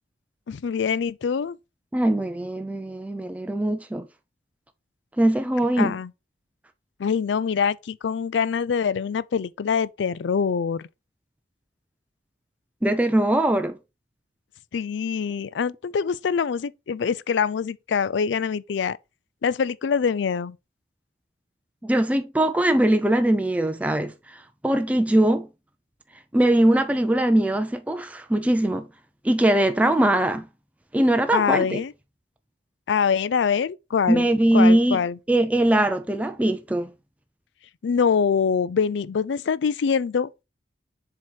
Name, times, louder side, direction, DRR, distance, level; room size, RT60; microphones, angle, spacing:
voice 1, 0.5-1.6 5.8-6.1 7.0-10.9 14.7-19.0 19.4-20.6 31.3-31.9 32.9-34.3 34.5-35.2 37.8-40.4, left 6 dB, 80° left, 0.4 m, -24 dB
voice 2, 1.9-4.1 5.2-6.0 12.8-13.8 21.8-25.5 26.3-28.9 29.2-30.5 30.9-31.8 34.1-35.0 35.3-36.9, right 1 dB, 10° right, 0.4 m, -21 dB
7.3 x 2.9 x 4.6 m
head